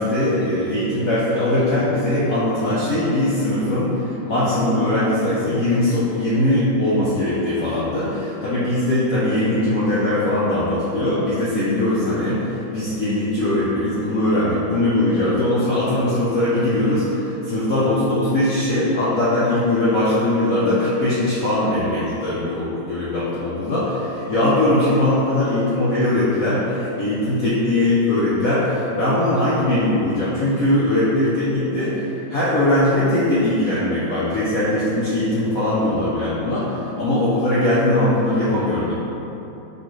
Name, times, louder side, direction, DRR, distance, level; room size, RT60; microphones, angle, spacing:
voice 1, 0.0-32.0 32.3-38.9, left 1 dB, 60° left, -10 dB, 0.9 m, -20 dB
5.1 x 3.2 x 3.1 m, 3.0 s
omnidirectional pair, 2.2 m